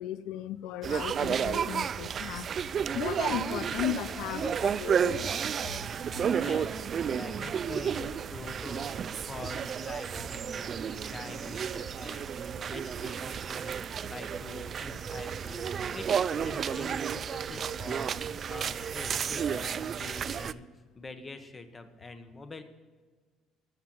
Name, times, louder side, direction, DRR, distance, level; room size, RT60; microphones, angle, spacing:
voice 1, 0.0-2.5 2.9-5.3 11.0-11.1 12.6-12.7 14.5-14.6 14.9-15.0 16.8-17.0, left 12 dB, 80° left, 14 dB, 0.5 m, -36 dB
sound 1, 0.8-20.5, right 7 dB, 35° right, 0.4 m, -32 dB
voice 2, 6.3-13.7 14.0-20.7 20.9-22.6, left 3 dB, 20° left, 9 dB, 1.1 m, -45 dB
13.5 x 7.3 x 7.6 m, 1.4 s
cardioid pair, 150°, 0 cm